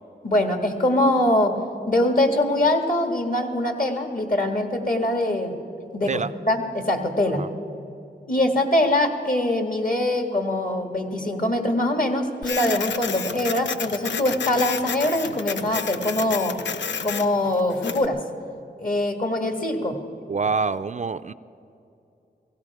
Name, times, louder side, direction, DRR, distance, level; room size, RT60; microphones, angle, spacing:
voice 1, 0.2-1.6 1.9-5.6 5.9-7.4 8.3-16.5 17.0-18.2 18.8-20.0, left 1 dB, 50° left, 4 dB, 1.7 m, -23 dB
Printer, 12.4-18.1, left 6 dB, 90° left, 0.5 m, -31 dB
voice 2, 20.3-21.3, right 4 dB, 45° right, 12 dB, 0.4 m, -26 dB
16.5 x 16.5 x 4.8 m, 2.7 s
wide cardioid pair, 60°, 18 cm